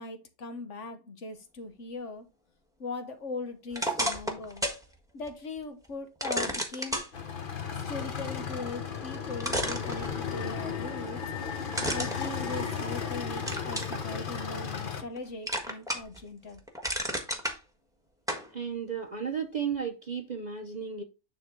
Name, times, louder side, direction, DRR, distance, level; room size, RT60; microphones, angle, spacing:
voice 1, 0.0-2.2 2.8-4.7 5.1-7.0 7.8-11.2 11.9-16.6, left 3 dB, 60° left, 1.3 m, -39 dB
sound 1, 3.7-4.8 5.3-5.4 6.2-7.1 8.9-9.0 9.4-10.5 11.7-13.0 13.5-14.0 14.5-15.2 15.5-16.2 16.5-17.6 18.3-18.5, equal, 5° right, 1.2 m, -32 dB
sound 2, 7.1-15.0, left 6 dB, 40° left, 1.0 m, -35 dB
voice 2, 18.5-21.0, right 7 dB, 40° right, 0.6 m, -34 dB
9.8 x 3.8 x 3.6 m
omnidirectional pair, 1.5 m